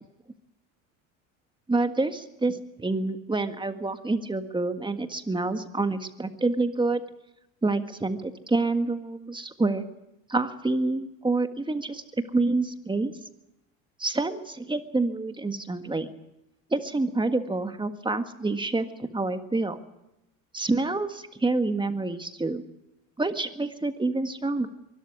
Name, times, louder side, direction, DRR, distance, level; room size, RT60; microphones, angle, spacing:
voice 1, 1.7-7.0 7.6-9.8 10.3-12.0 12.3-13.1 14.0-16.1 16.7-18.9 19.1-19.8 20.5-22.6 23.2-24.7, right 3 dB, 10° right, 8 dB, 1.7 m, -27 dB
23.0 x 13.0 x 9.6 m, 0.90 s
supercardioid pair, 90°, 39 cm